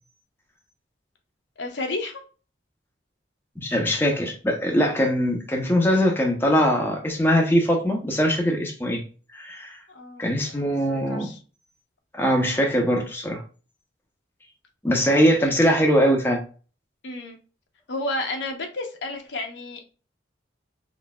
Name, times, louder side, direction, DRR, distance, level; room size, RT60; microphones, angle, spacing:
voice 1, 1.6-2.2 9.9-11.4 15.1-15.3 17.0-17.4 17.9-19.8, left 2 dB, 70° left, 0.9 m, -32 dB
voice 2, 3.6-9.0 9.3-9.8 10.2-11.3 12.1-13.4 14.8-16.4, equal, 10° left, 0.7 m, -21 dB
4.1 x 3.2 x 2.3 m
head